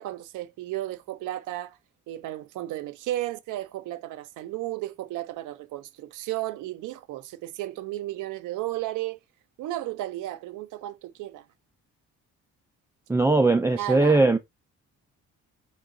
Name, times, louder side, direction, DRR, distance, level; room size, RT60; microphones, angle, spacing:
voice 1, 0.0-1.8 2.1-9.2 9.6-11.4 13.8-14.2, right 15 dB, 85° right, 0.5 m, -34 dB
voice 2, 13.1-14.4, right 3 dB, 10° right, 0.3 m, -20 dB
3.7 x 2.2 x 3.7 m
cardioid pair, 90°, 30 cm